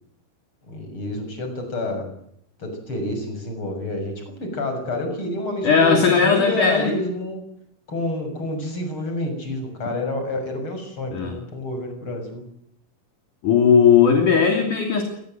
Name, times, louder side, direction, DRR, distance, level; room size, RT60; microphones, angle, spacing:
voice 1, 0.7-2.1 2.6-7.4 7.9-12.4, left 1 dB, 30° left, 5 dB, 7.4 m, -28 dB
voice 2, 5.6-6.9 11.1-11.4 13.4-15.0, left 6 dB, 55° left, 4 dB, 4.4 m, -17 dB
26.5 x 20.0 x 7.9 m, 0.72 s
omnidirectional pair, 4.6 m